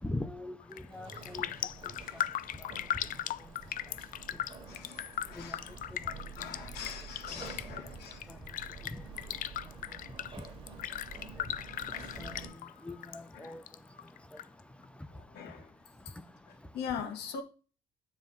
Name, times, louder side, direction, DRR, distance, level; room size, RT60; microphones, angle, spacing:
voice 1, 0.0-1.5 5.4-5.6 12.2-12.4 12.8-13.6, left 2 dB, 5° left, 0.7 m, -40 dB
Raindrop, 0.6-0.8 1.1-13.2 13.4-14.4 14.8-14.9, left 11 dB, 55° left, 0.5 m, -38 dB
sound 1, 0.9-12.5, right 4 dB, 30° right, 2.2 m, -49 dB
voice 2, 4.7-5.7 6.4-8.2 11.7-12.8 13.3-13.6 15.1-15.7 16.7-17.4, left 7 dB, 75° left, 1.6 m, -43 dB
9.6 x 3.4 x 5.6 m
cardioid pair, 110°, 17 cm